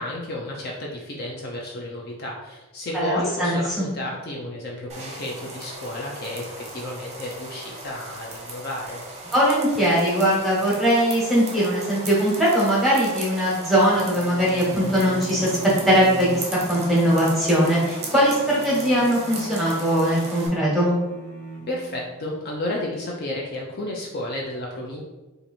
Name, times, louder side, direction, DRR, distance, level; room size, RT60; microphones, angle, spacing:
voice 1, 0.0-9.0 21.7-25.0, left 1 dB, 45° left, -2 dB, 0.5 m, -32 dB
voice 2, 2.9-3.9 9.3-15.5 15.9-20.9, equal, ahead, -6 dB, 1.1 m, -20 dB
sound 1, 4.9-20.5, right 2 dB, 30° right, 0.7 m, -37 dB
sound 2, 13.9-22.3, right 2 dB, 90° left, 1.3 m, -39 dB
2.9 x 2.6 x 4.1 m, 1.1 s
head